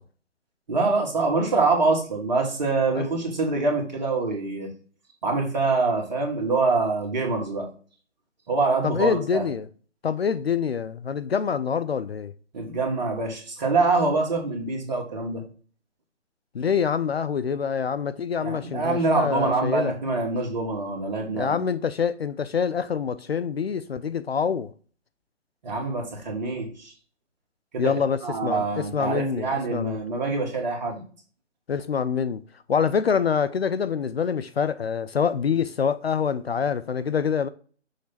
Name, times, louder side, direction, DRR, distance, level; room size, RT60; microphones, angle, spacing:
voice 1, 0.7-4.7 5.2-7.7 8.5-9.5 12.5-15.4 18.4-21.7 25.6-26.9 27.7-27.9 28.2-31.0, right 3 dB, 40° right, 1.8 m, -25 dB
voice 2, 8.8-9.7 10.0-12.3 16.5-19.9 21.3-24.7 27.8-30.0 31.7-32.4 32.7-37.5, left 6 dB, 60° left, 0.5 m, -26 dB
6.4 x 3.2 x 5.7 m
figure-of-eight pair, 150°, 36 cm